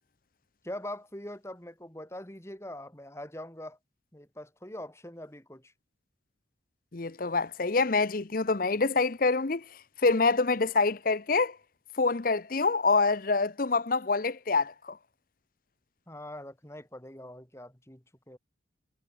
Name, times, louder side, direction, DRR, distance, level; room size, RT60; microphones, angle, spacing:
voice 1, 0.6-3.8 4.1-5.7 16.1-18.4, left 1 dB, 15° left, 3.8 m, -43 dB
voice 2, 6.9-9.6 10.0-11.6 12.0-15.0, left 3 dB, 45° left, 0.8 m, -26 dB
head